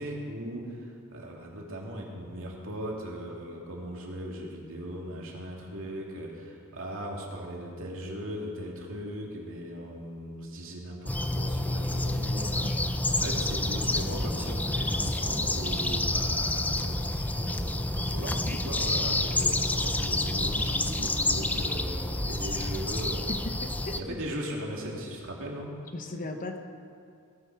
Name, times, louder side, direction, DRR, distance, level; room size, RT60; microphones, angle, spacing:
voice 1, 0.0-23.3 23.9-25.7, equal, 65° right, -2 dB, 2.8 m, -38 dB
sound 1, 11.1-24.0, left 1 dB, 5° left, 0.5 m, -29 dB
voice 2, 23.6-24.2 25.9-26.6, left 2 dB, 40° left, 5 dB, 1.1 m, -37 dB
18.0 x 10.0 x 6.2 m, 2.2 s
head